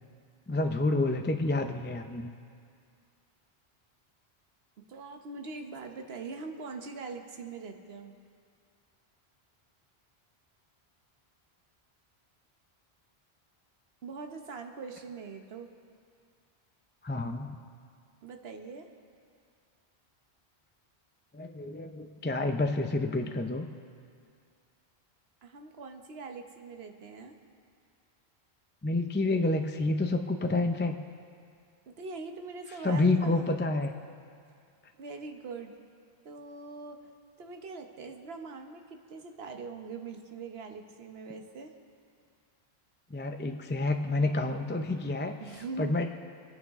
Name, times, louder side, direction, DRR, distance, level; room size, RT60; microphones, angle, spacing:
voice 1, 0.5-2.3 17.0-17.6 21.3-23.7 28.8-31.0 32.8-33.9 43.1-45.4 45.8-46.1, left 2 dB, 15° left, 5 dB, 0.4 m, -29 dB
voice 2, 4.8-8.2 14.0-15.7 18.2-18.9 25.4-27.3 31.9-33.5 34.9-35.7 36.2-37.1 37.4-41.7 45.4-45.9, right 4 dB, 70° right, 5 dB, 1.2 m, -42 dB
26.5 x 9.5 x 3.6 m, 2.2 s
omnidirectional pair, 1.1 m